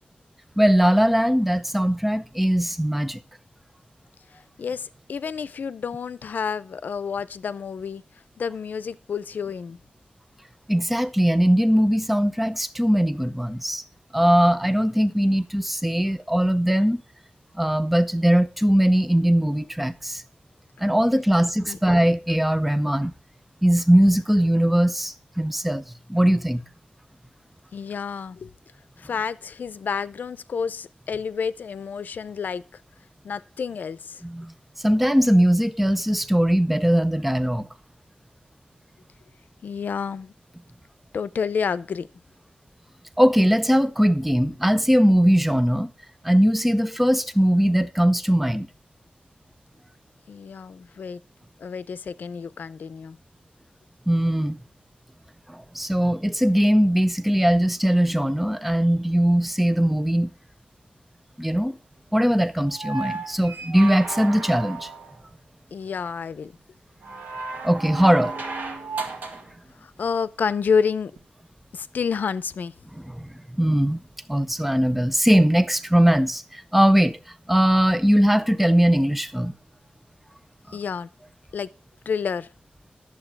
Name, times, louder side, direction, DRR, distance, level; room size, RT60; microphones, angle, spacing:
voice 1, 0.6-3.2 10.7-13.8 14.1-17.0 17.6-20.2 20.8-23.1 23.6-26.6 34.2-34.5 34.8-37.7 43.2-45.9 46.2-48.7 54.1-54.6 55.5-60.3 61.4-61.8 62.1-64.9 67.6-68.3 73.1-74.0 74.3-77.2 77.5-79.5 80.7-80.8, equal, 5° right, 0.5 m, -20 dB
voice 2, 4.6-8.0 8.4-9.8 21.7-21.8 27.7-28.5 29.0-32.6 33.2-34.2 39.6-40.3 41.1-42.1 50.3-51.2 51.6-53.2 65.7-66.5 69.8-71.1 71.7-72.7 80.7-81.1 81.5-81.7 82.1-82.5, left 6 dB, 80° left, 0.5 m, -29 dB
sound 1, 62.7-65.2 67.0-69.5 71.2-71.3, right 4 dB, 80° right, 1.9 m, -34 dB
11.0 x 7.3 x 4.6 m
wide cardioid pair, 135°, 3 cm